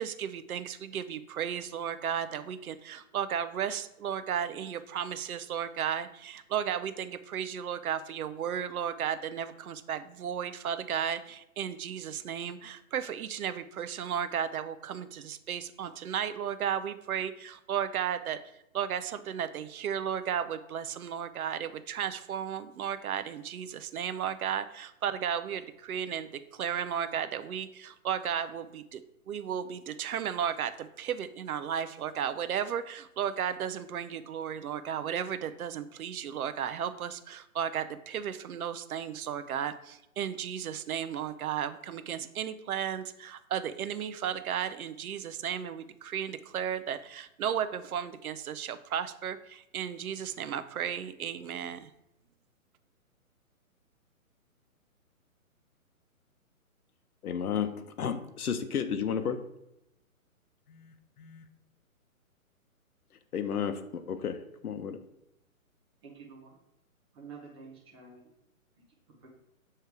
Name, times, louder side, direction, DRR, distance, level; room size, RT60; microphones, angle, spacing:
voice 1, 0.0-51.9, right 8 dB, 75° right, 11 dB, 0.6 m, -34 dB
voice 2, 57.2-59.4 60.7-61.4 63.3-65.0, left 7 dB, 90° left, 9 dB, 0.8 m, -33 dB
voice 3, 66.0-66.6 67.1-68.3 69.1-69.3, right 5 dB, 20° right, -3 dB, 0.8 m, -49 dB
6.8 x 3.2 x 4.6 m, 0.84 s
hypercardioid pair, 160°, 43 cm